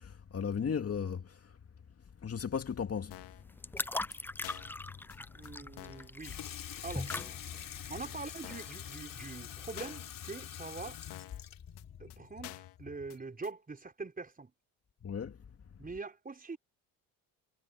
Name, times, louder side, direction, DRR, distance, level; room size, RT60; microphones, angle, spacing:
voice 1, 0.0-1.5 2.2-3.3 5.6-5.7 15.0-15.4, left 7 dB, 35° left, 2.3 m, -36 dB
sound 1, 3.1-3.4 3.8-3.9 4.1-4.2 4.4-4.8 5.1-5.2 5.4-5.5 5.8-6.1 6.4-6.5 6.8-6.9 7.1-7.4 7.8-7.9 8.1-8.2 8.4-8.8 9.1-9.2 9.4-9.5 9.8-10.1 10.4-10.5 10.8-10.9 11.1-11.4 11.8-11.9 12.1-12.2 12.4-12.8 13.1-13.2 13.4-13.5, left 17 dB, 80° left, 2.2 m, -48 dB
sound 2, 3.1-9.8, left 2 dB, 5° left, 0.4 m, -42 dB
voice 2, 5.3-6.4 6.8-7.1 7.9-11.0 12.0-14.5 15.8-16.6, right 4 dB, 20° right, 4.7 m, -43 dB
Water tap faucet / Sink (filling or washing), 6.2-13.2, left 10 dB, 55° left, 4.0 m, -45 dB
supercardioid pair, 90°, 39 cm